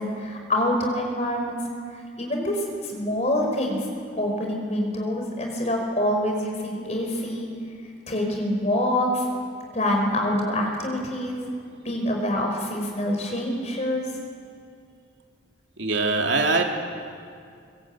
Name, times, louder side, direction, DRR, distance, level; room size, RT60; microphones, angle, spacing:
voice 1, 0.0-1.6 1.9-3.9 4.2-7.5 8.1-9.2 9.7-11.5 11.8-14.0, left 1 dB, 35° left, 2 dB, 4.8 m, -26 dB
voice 2, 15.8-16.6, right 3 dB, 75° right, 2 dB, 2.7 m, -22 dB
23.0 x 20.5 x 8.9 m, 2.3 s
head